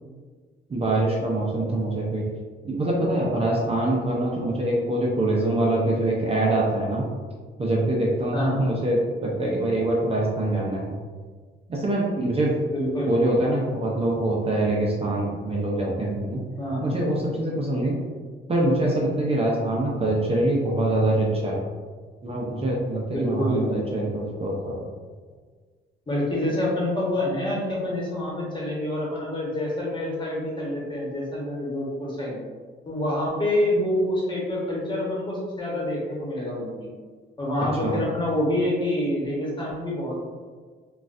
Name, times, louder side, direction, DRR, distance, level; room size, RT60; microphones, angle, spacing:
voice 1, 0.7-2.3 2.6-7.1 7.6-11.0 11.7-12.6 13.1-16.4 16.8-18.0 18.5-21.6 22.2-24.8 37.8-38.0, right 1 dB, 30° right, -3 dB, 0.6 m, -24 dB
voice 2, 8.3-8.8 12.7-13.3 16.6-17.0 23.1-23.7 26.1-32.4 32.9-36.9 37.4-40.1, left 1 dB, 25° left, -4 dB, 1.2 m, -27 dB
3.8 x 2.4 x 2.6 m, 1.5 s
cardioid pair, 90°, 20 cm